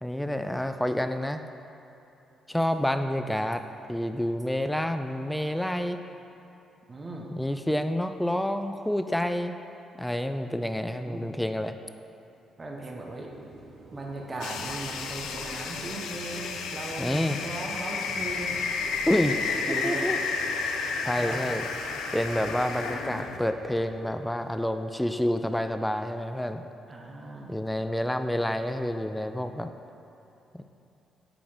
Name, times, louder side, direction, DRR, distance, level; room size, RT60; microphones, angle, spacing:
voice 1, 0.0-1.4 2.5-3.6 3.9-6.0 7.3-9.6 10.0-11.7 17.0-17.4 19.1-19.4 19.8-20.2 21.0-21.6 22.1-26.6 27.5-29.7 30.5-30.6, left 1 dB, 5° left, 8 dB, 0.3 m, -28 dB
voice 2, 6.9-7.3 10.9-11.3 12.6-13.3 13.9-18.8 19.2-19.4 19.7-20.1 21.2-21.4 26.9-27.6, right 2 dB, 35° right, -1 dB, 0.9 m, -38 dB
sound 1, 13.3-24.0, right 2 dB, 70° right, 1.0 m, -45 dB
sound 2, 14.4-23.4, left 5 dB, 85° left, 0.4 m, -32 dB
5.9 x 4.2 x 5.0 m, 2.9 s
supercardioid pair, 70°, 0 cm